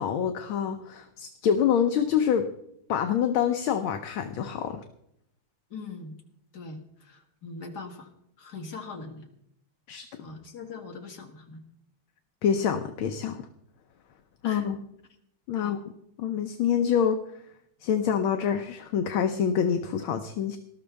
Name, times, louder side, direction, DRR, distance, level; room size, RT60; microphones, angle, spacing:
voice 1, 0.0-2.5 2.9-4.8 9.9-10.1 12.4-13.5 14.4-14.8 15.5-15.8 16.2-17.2 17.8-20.6, left 8 dB, 70° left, 6 dB, 1.6 m, -26 dB
voice 2, 5.7-6.2 6.5-8.1 8.4-9.3 10.2-11.6 14.4-14.7 15.5-15.8, left 4 dB, 50° left, 1 dB, 2.4 m, -41 dB
19.5 x 12.5 x 3.4 m, 0.75 s
omnidirectional pair, 2.4 m